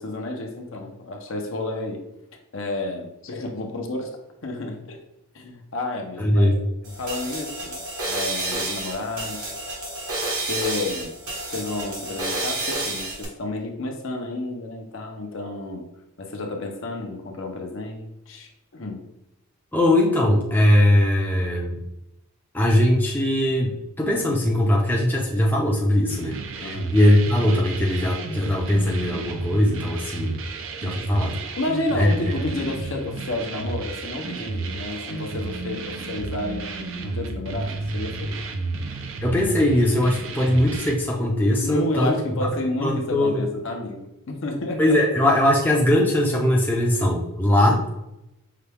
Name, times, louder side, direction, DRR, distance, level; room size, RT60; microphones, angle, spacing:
voice 1, 0.0-2.0 2.5-4.1 4.4-5.0 5.3-6.5 6.8-9.5 10.4-11.2 11.5-15.9 16.2-19.1 26.6-26.9 31.6-38.4 41.6-45.0, left 2 dB, 60° left, 2 dB, 0.7 m, -31 dB
voice 2, 6.2-6.6 19.7-21.8 22.5-30.4 30.8-31.4 32.0-32.1 39.2-42.5 42.8-43.4 44.8-47.9, left 1 dB, 10° left, -2 dB, 0.5 m, -20 dB
sound 1, 6.8-13.2, right 2 dB, 80° right, 1.4 m, -30 dB
sound 2, 26.1-40.9, right 3 dB, 60° right, 0.4 m, -32 dB
5.7 x 2.2 x 3.4 m, 0.89 s
head